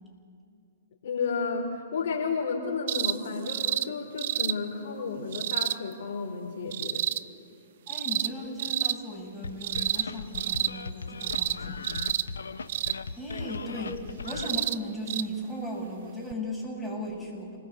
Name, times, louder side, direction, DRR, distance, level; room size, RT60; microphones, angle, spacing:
voice 1, 1.0-7.0, left 5 dB, 60° left, 0 dB, 4.1 m, -32 dB
sound 1, 2.9-3.2 3.5-3.9 4.2-4.6 5.3-5.8 6.7-7.2 7.9-8.3 8.6-9.0 9.6-10.1 10.3-10.7 11.2-11.6 11.8-12.3 12.7-13.0 14.3-14.8 15.1-15.2 16.3-16.4, right 11 dB, 55° right, 0.8 m, -29 dB
voice 2, 7.9-11.9 13.2-17.6, equal, 5° left, -4 dB, 7.4 m, -37 dB
sound 2, 9.4-14.5, left 4 dB, 80° left, 1.0 m, -38 dB
28.0 x 20.5 x 8.3 m, 2.4 s
hypercardioid pair, 120°, 0 cm